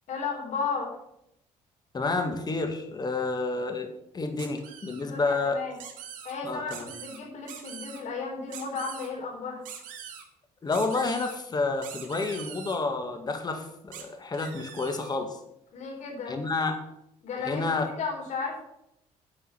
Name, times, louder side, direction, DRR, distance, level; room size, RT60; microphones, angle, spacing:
voice 1, 0.1-0.9 4.4-4.5 5.0-5.8 6.2-9.6 15.7-16.4 17.2-18.6, left 5 dB, 65° left, 0 dB, 4.4 m, -34 dB
voice 2, 1.9-3.9 4.1-5.6 6.4-6.9 10.6-15.4 16.3-16.8 17.4-17.9, left 3 dB, 30° left, 6 dB, 1.9 m, -29 dB
sound 1, 4.4-5.0 5.8-6.3 6.7-7.2 7.5-8.0 8.5-9.1 9.7-10.2 10.7-11.4 11.8-12.8 13.9-14.0 14.3-15.2, right 8 dB, 85° right, 2.3 m, -43 dB
10.0 x 5.5 x 8.1 m, 0.78 s
cardioid pair, 90°, 13 cm